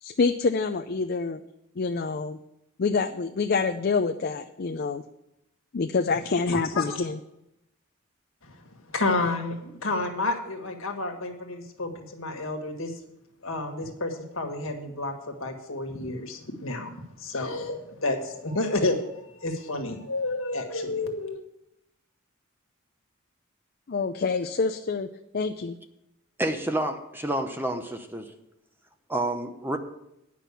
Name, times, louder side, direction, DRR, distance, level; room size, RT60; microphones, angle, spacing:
voice 1, 0.0-1.4 1.8-2.4 2.8-5.0 5.7-7.2 23.9-25.1 25.3-25.7, left 4 dB, 45° left, 5 dB, 0.5 m, -26 dB
voice 2, 6.5-7.0 8.4-13.0 13.4-16.9 17.2-21.4, left 2 dB, 70° left, 3 dB, 1.7 m, -30 dB
voice 3, 26.4-28.3 29.1-29.8, right 1 dB, 10° right, 6 dB, 0.8 m, -29 dB
9.9 x 6.0 x 8.2 m, 0.85 s
head